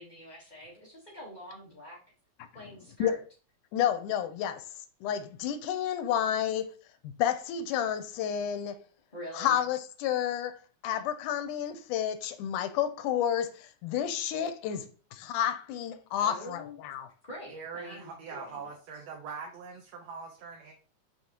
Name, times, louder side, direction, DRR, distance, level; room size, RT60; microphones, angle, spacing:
voice 1, 0.0-2.0 2.5-3.2 9.1-9.6 16.2-16.8 17.3-18.7, left 1 dB, 30° left, 0.7 m, -45 dB
voice 2, 3.7-4.6 5.0-6.7 7.2-8.8 9.3-10.6 10.8-17.1, left 9 dB, 90° left, 2.2 m, -30 dB
voice 3, 17.5-20.7, right 5 dB, 65° right, 1.9 m, -42 dB
6.6 x 5.9 x 3.0 m
omnidirectional pair, 3.5 m